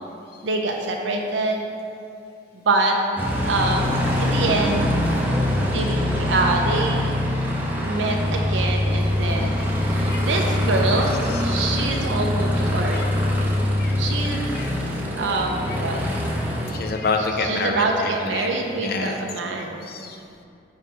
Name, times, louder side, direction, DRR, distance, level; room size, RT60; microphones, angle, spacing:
voice 1, 0.4-1.7 2.5-3.0 3.4-3.9 4.2-4.9 5.6-7.1 7.8-13.0 14.0-14.4 15.1-16.0 17.4-19.9, right 3 dB, 75° right, 1 dB, 0.6 m, -25 dB
Aircraft, 3.2-16.7, left 1 dB, 10° right, 0.6 m, -23 dB
voice 2, 9.2-9.6 10.0-10.2 11.3-11.7 12.0-12.1 12.9-13.0 13.8-14.0 14.5-14.7 15.7-15.8 16.7-19.2 19.9-20.2, left 3 dB, 50° left, 3 dB, 0.5 m, -29 dB
5.6 x 3.1 x 5.5 m, 2.5 s
head